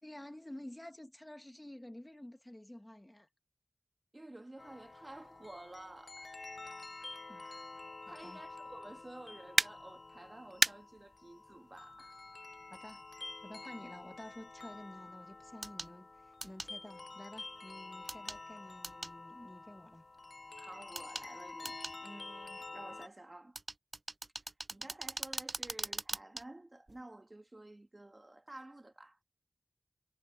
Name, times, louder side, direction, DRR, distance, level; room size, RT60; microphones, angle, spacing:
voice 1, 0.0-3.3 7.3-7.5 8.1-8.4 12.7-13.0 13.4-20.0, left 1 dB, 20° left, 1.7 m, -51 dB
voice 2, 4.1-6.4 7.3-7.7 8.0-12.2 20.6-23.6 24.7-29.2, right 1 dB, 35° right, 2.1 m, -52 dB
sound 1, 4.6-23.1, left 3 dB, 65° left, 0.5 m, -49 dB
sound 2, 9.6-9.7 10.6-10.7 12.7-12.8 15.6-15.9 16.4-16.7 18.1-18.4 18.8-19.1 21.0-21.3 21.7-22.0 23.6-26.4 26.9-27.0, right 2 dB, 50° right, 0.4 m, -35 dB
wide cardioid pair, 50°, 0 cm